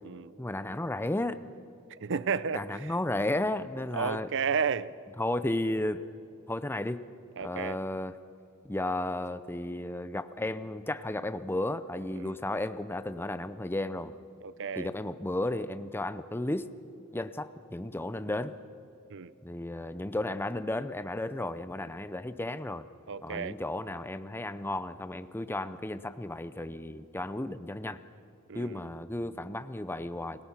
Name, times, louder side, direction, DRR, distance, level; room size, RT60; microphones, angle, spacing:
voice 1, 0.4-1.4 2.5-4.3 5.2-6.1 6.5-7.0 7.4-8.1 8.6-14.2 14.8-16.7 17.1-18.5 19.4-22.9 23.2-28.0 28.5-30.4, left 1 dB, 10° left, 0.6 m, -33 dB
voice 2, 1.9-2.9 3.9-4.9 7.4-7.8 12.1-12.4 14.4-14.9 19.1-19.3 23.1-23.6 28.5-28.9, right 6 dB, 55° right, 0.7 m, -32 dB
30.0 x 21.5 x 5.8 m
head